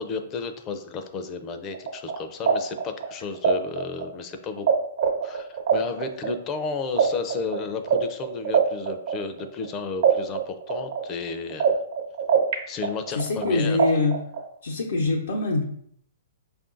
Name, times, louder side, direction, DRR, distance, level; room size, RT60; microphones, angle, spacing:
voice 1, 0.0-4.7 5.2-11.8 12.7-13.8, left 4 dB, 25° left, 7 dB, 0.5 m, -33 dB
sound 1, 1.7-4.7 5.0-9.7 10.0-12.5 12.8-14.5, right 7 dB, 60° right, 0.8 m, -23 dB
voice 2, 13.1-14.2 14.6-15.6, left 3 dB, 85° left, -5 dB, 0.9 m, -24 dB
5.3 x 2.6 x 3.8 m, 0.67 s
hypercardioid pair, 140°, 0 cm